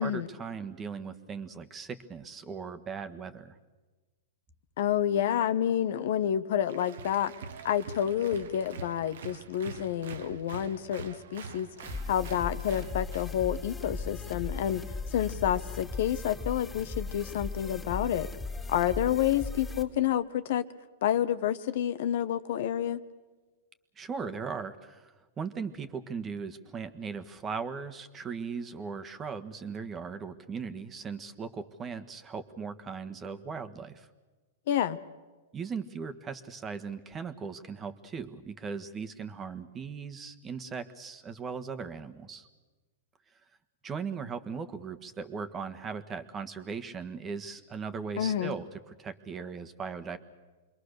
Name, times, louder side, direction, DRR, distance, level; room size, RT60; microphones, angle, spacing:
voice 1, 0.0-3.6 24.0-34.1 35.5-42.5 43.8-48.7 49.0-50.2, right 5 dB, 20° right, 10 dB, 1.5 m, -38 dB
voice 2, 4.8-7.3 7.6-11.7 12.1-14.8 15.1-18.3 18.7-20.7 21.0-23.0 34.7-35.0 48.2-48.5, left 10 dB, 65° left, 12 dB, 1.1 m, -29 dB
Applause, 6.7-13.3, right 6 dB, 75° right, 1.4 m, -45 dB
sound 1, 11.8-19.8, left 4 dB, 10° left, 2.5 m, -37 dB
27.5 x 22.5 x 6.7 m, 1.3 s
hypercardioid pair, 125°, 0 cm